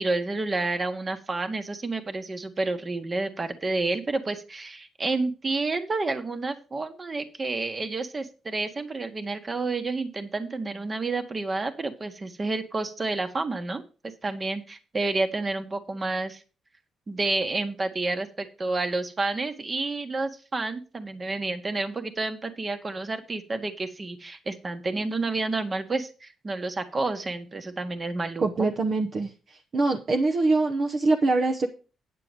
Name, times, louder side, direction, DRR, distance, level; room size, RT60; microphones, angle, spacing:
voice 1, 0.0-13.8 14.2-16.4 17.1-28.7, right 3 dB, 30° right, 8 dB, 1.5 m, -30 dB
voice 2, 28.4-31.7, right 3 dB, 45° right, 2 dB, 1.0 m, -24 dB
9.6 x 6.8 x 5.2 m, 0.35 s
cardioid pair, 90°, 0 cm